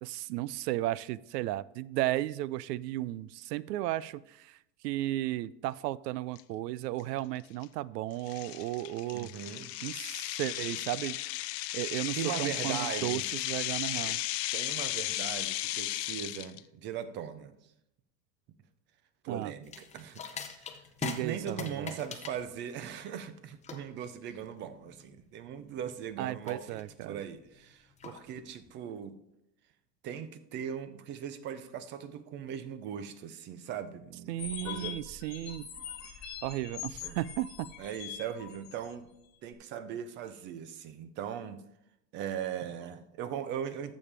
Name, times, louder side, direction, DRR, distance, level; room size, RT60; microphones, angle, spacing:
voice 1, 0.0-4.6 4.8-9.3 9.8-11.2 11.7-14.2 19.3-19.5 21.0-21.9 26.2-27.2 34.3-35.7 36.4-37.7, right 15 dB, 80° right, 21 dB, 0.5 m, -34 dB
sound 1, 6.4-6.5 7.0-7.2 7.6-7.7 8.3-16.6, left 16 dB, 80° left, 0.6 m, -35 dB
voice 2, 9.1-9.7 12.1-13.2 14.5-17.5 19.2-20.2 20.5-20.8 21.2-29.2 30.0-34.3 34.6-35.0 37.0-37.2 37.8-39.1 39.4-41.6 42.1-43.9, right 8 dB, 25° right, 13 dB, 0.3 m, -39 dB
sound 2, 19.6-28.7, left 6 dB, 15° left, 0.6 m, -44 dB
sound 3, 34.4-38.9, left 8 dB, 35° left, 1.6 m, -43 dB
12.0 x 7.2 x 3.3 m, 0.82 s
supercardioid pair, 125°, 48 cm